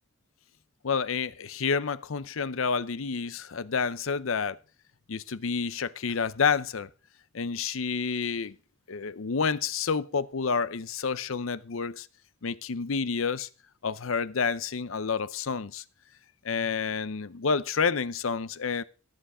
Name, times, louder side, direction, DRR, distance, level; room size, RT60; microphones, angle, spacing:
voice 1, 0.8-4.6 5.1-6.9 7.3-8.5 8.9-12.1 12.4-13.5 13.8-15.8 16.4-18.8, left 5 dB, 75° left, 0.6 m, -29 dB
14.0 x 8.0 x 4.9 m
head